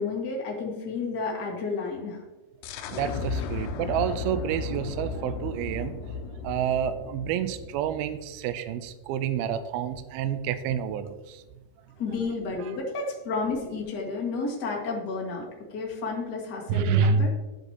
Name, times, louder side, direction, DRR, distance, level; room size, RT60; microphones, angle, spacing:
voice 1, 0.0-2.2 3.1-3.5 12.0-17.3, left 4 dB, 50° left, -2 dB, 1.2 m, -31 dB
sound 1, 2.6-8.1, left 5 dB, 80° left, 2.8 m, -35 dB
voice 2, 2.9-6.2 6.4-11.4 12.6-12.7 16.7-17.3, right 7 dB, 90° right, 10 dB, 2.2 m, -28 dB
13.0 x 8.1 x 2.9 m, 1.1 s
omnidirectional pair, 5.0 m